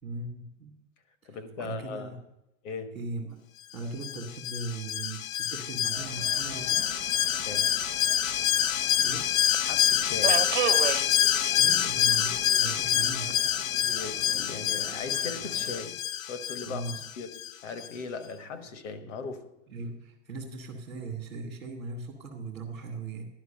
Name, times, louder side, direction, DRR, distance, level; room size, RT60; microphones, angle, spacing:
voice 1, 0.0-0.7 1.2-2.2 2.9-3.4 3.7-6.9 9.0-9.3 11.4-13.5 16.6-17.0 19.7-23.3, right 3 dB, 5° left, -5 dB, 0.3 m, -39 dB
voice 2, 1.2-2.1 2.6-3.0 7.4-7.8 9.6-10.5 13.8-16.0 16.3-19.4, left 4 dB, 65° left, 9 dB, 1.3 m, -39 dB
Alarm, 4.0-17.5 17.8-17.9, left 11 dB, 90° left, 0.6 m, -27 dB
Subway metro underground, 5.9-15.8, right 12 dB, 55° right, 0.6 m, -38 dB
11.0 x 5.6 x 7.5 m, 0.83 s
supercardioid pair, 180°, 39 cm